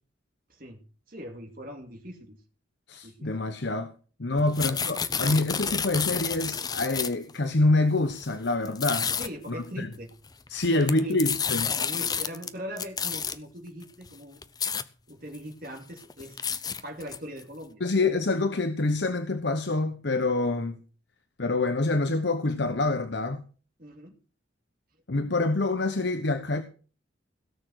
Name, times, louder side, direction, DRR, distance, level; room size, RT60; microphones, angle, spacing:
voice 1, 0.5-0.8 1.1-2.4 3.0-3.3 4.3-4.8 9.2-10.1 10.7-11.2 11.8-14.4 15.1-16.4 16.8-17.8 23.8-24.1, equal, 45° right, 2.5 m, -41 dB
voice 2, 2.9-3.9 4.2-9.1 9.5-9.9 10.5-11.7 17.8-20.8 21.4-23.4 25.1-26.6, left 2 dB, 60° left, 0.9 m, -26 dB
sound 1, 4.4-7.3 8.1-8.3 8.7-9.3 10.5-12.5 12.8-13.4 14.1-14.2 14.4-14.8 15.3-15.4 15.8-17.4, left 6 dB, 20° left, 0.6 m, -30 dB
17.0 x 6.9 x 6.4 m
head